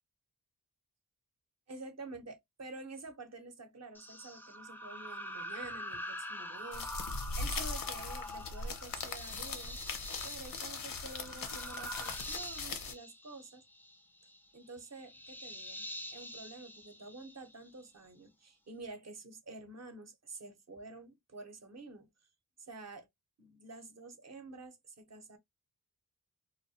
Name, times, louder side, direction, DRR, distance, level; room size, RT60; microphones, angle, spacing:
voice 1, 1.7-9.8 10.2-13.6 14.5-15.8 16.1-22.1 22.6-23.1 23.4-25.4, right 3 dB, 50° right, 0.7 m, -49 dB
sound 1, 3.9-17.8, left 1 dB, 5° left, 0.3 m, -45 dB
sound 2, 6.7-12.9, left 4 dB, 70° left, 0.7 m, -40 dB
2.3 x 2.1 x 2.7 m
wide cardioid pair, 80°, 34 cm